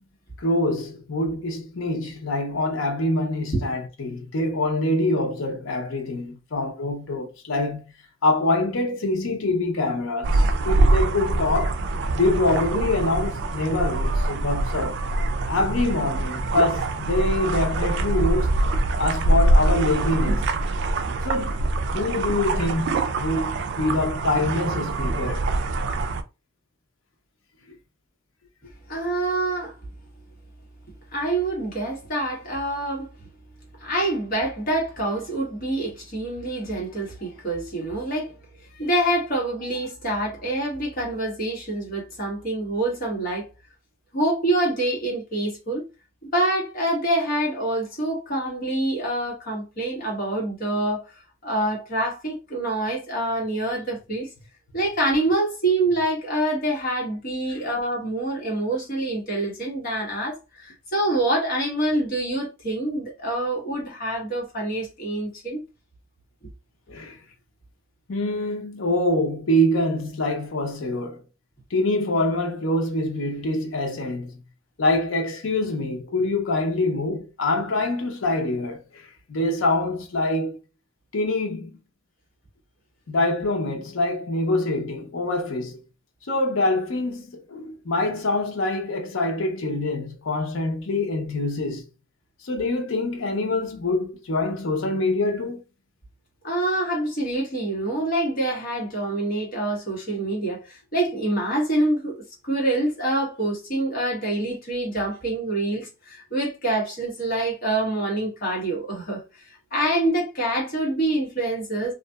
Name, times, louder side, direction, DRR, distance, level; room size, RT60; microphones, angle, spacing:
voice 1, 0.4-7.8 8.2-11.8 12.1-15.0 15.5-18.6 19.0-20.5 21.2-21.6 21.9-25.4 57.5-57.6 66.9-67.2 68.1-71.2 71.7-74.4 74.8-79.0 79.3-80.6 81.1-81.8 83.1-85.8 86.3-91.8 92.4-95.6, left 2 dB, 85° left, 0.7 m, -25 dB
sound 1, 10.2-26.2, right 2 dB, 60° right, 0.3 m, -24 dB
voice 2, 28.9-29.7 31.1-33.1 33.8-38.4 38.7-43.5 44.1-45.8 46.2-51.0 51.4-54.3 54.7-65.6 96.4-102.1 102.4-111.9, right 1 dB, 50° left, 1.3 m, -26 dB
2.7 x 2.4 x 2.3 m
head